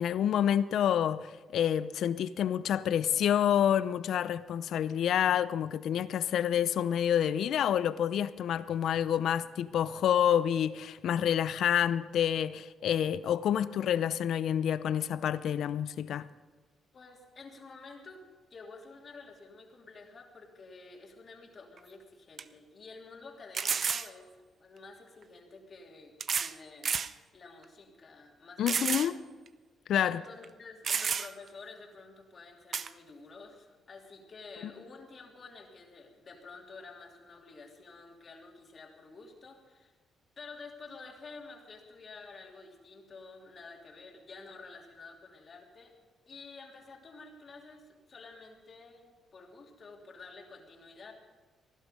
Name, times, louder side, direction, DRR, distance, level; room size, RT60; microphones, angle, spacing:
voice 1, 0.0-16.3 28.6-29.2 29.9-30.2, left 9 dB, 70° left, 0.6 m, -28 dB
voice 2, 16.9-18.2 18.5-27.0 27.3-29.1 30.0-39.9 40.4-45.9 46.3-51.1, left 3 dB, 45° left, 3.1 m, -50 dB
sound 1, 21.8-21.9 22.4-22.5 23.5-24.1 25.2-25.3 26.2-26.6 26.8-27.1 27.6-27.7 28.7-29.1 29.5-29.6 30.4-30.5 30.8-31.5 32.7-32.9, right 6 dB, 50° right, 0.6 m, -31 dB
19.0 x 11.5 x 5.3 m
cardioid pair, 90°, 0 cm